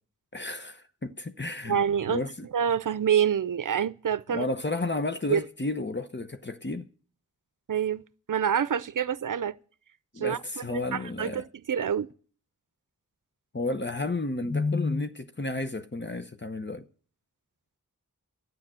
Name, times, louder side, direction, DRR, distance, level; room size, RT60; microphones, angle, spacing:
voice 1, 0.3-1.8 2.1-2.5 4.3-6.9 10.1-11.4 13.5-16.8, left 2 dB, 35° left, 0.9 m, -31 dB
voice 2, 1.7-2.3 2.5-4.4 5.3-5.4 7.7-8.0 8.3-9.5 10.2-12.1, right 8 dB, 70° right, 0.6 m, -27 dB
12.5 x 9.3 x 7.6 m
wide cardioid pair, 40°, 32 cm